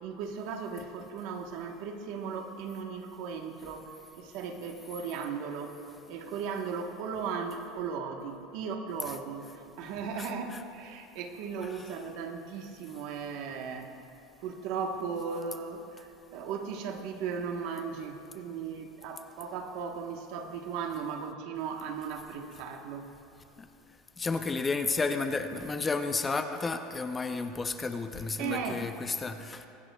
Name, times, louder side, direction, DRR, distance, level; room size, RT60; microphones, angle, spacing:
voice 1, 0.0-3.9 4.2-5.8 6.1-13.9 14.4-23.1 28.4-28.8, right 6 dB, 60° right, 4 dB, 1.1 m, -37 dB
voice 2, 10.2-10.6 11.6-12.0 24.2-29.7, left 4 dB, 15° left, 7 dB, 0.5 m, -32 dB
23.0 x 10.5 x 2.3 m, 2.8 s
supercardioid pair, 140°, 0 cm